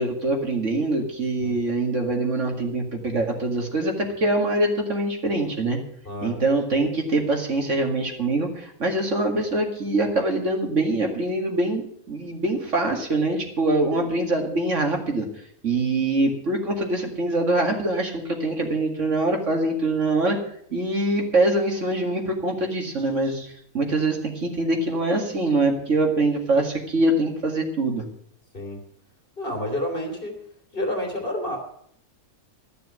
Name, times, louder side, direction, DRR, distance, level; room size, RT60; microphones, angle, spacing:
voice 1, 0.0-5.8 6.2-15.3 15.6-20.4 20.7-23.5 23.7-28.1, right 2 dB, 55° right, 2 dB, 2.4 m, -24 dB
voice 2, 6.0-6.4 28.5-28.8 29.4-30.4 30.7-31.6, left 1 dB, 40° left, 3 dB, 3.0 m, -29 dB
13.5 x 6.9 x 9.3 m, 0.65 s
omnidirectional pair, 1.5 m